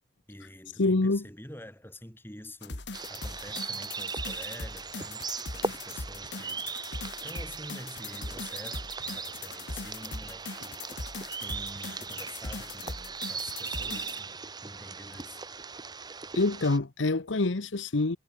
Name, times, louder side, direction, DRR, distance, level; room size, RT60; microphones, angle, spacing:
voice 1, 0.3-2.8 3.1-5.3 5.5-6.8 7.2-10.9 11.4-15.4, left 1 dB, 10° left, 4.7 m, -47 dB
voice 2, 0.8-1.2 16.3-18.2, left 2 dB, 85° left, 1.0 m, -26 dB
sound 1, 2.6-14.2, left 3 dB, 65° left, 2.3 m, -40 dB
sound 2, 2.9-16.8, right 5 dB, 20° right, 1.1 m, -38 dB
head